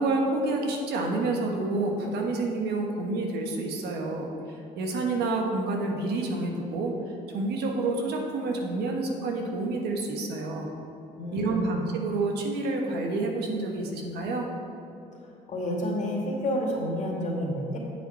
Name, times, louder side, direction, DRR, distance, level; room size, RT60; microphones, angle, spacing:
voice 1, 0.0-4.3 4.8-6.9 7.3-10.7 11.3-14.5, right 2 dB, 75° right, 1 dB, 1.4 m, -28 dB
voice 2, 11.2-11.9 15.5-17.8, equal, 45° left, -2 dB, 2.1 m, -29 dB
8.9 x 8.0 x 4.3 m, 2.9 s
cardioid pair, 110°, 17 cm